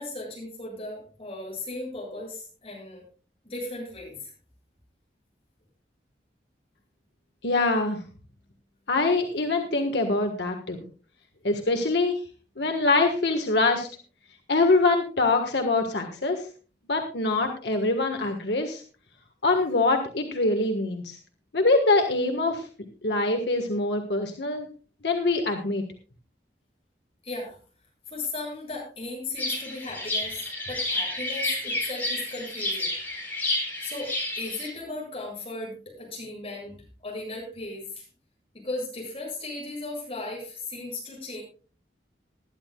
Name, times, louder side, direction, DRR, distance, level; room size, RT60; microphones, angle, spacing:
voice 1, 0.0-3.0 3.4-4.3 27.2-27.6 28.1-32.9 33.8-36.7 37.0-38.1 38.5-41.4, left 2 dB, 35° left, -2 dB, 7.4 m, -36 dB
voice 2, 7.4-8.0 8.9-10.8 11.4-12.2 12.6-13.9 14.5-16.5 16.9-18.8 19.4-21.2 21.5-22.7 23.0-24.7 25.0-25.8, left 3 dB, 80° left, 4 dB, 1.5 m, -24 dB
sound 1, 29.4-34.7, left 2 dB, 10° left, 3.9 m, -30 dB
20.5 x 11.0 x 2.3 m, 0.36 s
head